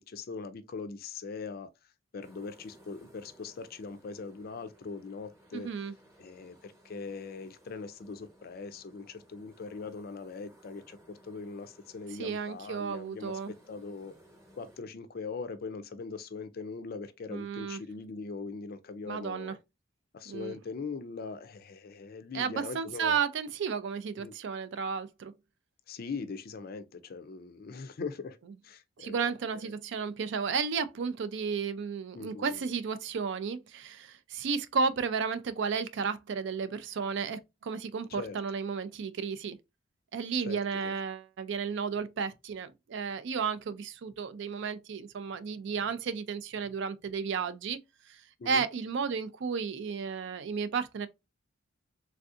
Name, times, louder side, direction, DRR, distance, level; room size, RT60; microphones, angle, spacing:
voice 1, 0.0-1.7 2.1-5.7 6.2-13.4 13.7-14.1 14.6-19.6 20.1-23.2 24.2-24.3 25.9-28.4 28.6-29.7 32.2-32.6 38.1-38.4 40.5-41.0 48.4-48.6, left 4 dB, 50° left, 0.4 m, -41 dB
sound 1, 2.2-14.8, equal, 15° right, 0.9 m, -60 dB
voice 2, 5.5-5.9 12.2-13.5 17.3-17.8 19.0-19.6 20.3-20.6 22.3-25.3 29.0-39.6 40.1-47.8 48.1-48.2 48.5-51.1, right 5 dB, 65° right, 0.4 m, -33 dB
3.4 x 2.6 x 2.4 m
head